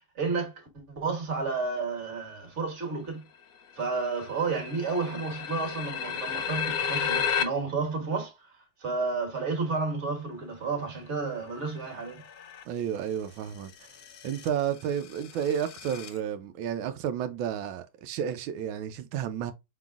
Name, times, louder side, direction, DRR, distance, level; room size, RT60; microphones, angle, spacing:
voice 1, 0.2-3.2 3.8-12.2, right 4 dB, 40° right, 1.7 m, -31 dB
sound 1, 3.4-3.5 3.7-7.4 11.7-12.6 13.5-16.2, left 7 dB, 70° left, 1.3 m, -33 dB
voice 2, 12.7-13.9 14.2-19.5, right 9 dB, 90° right, 1.4 m, -31 dB
5.7 x 3.8 x 2.3 m
omnidirectional pair, 2.1 m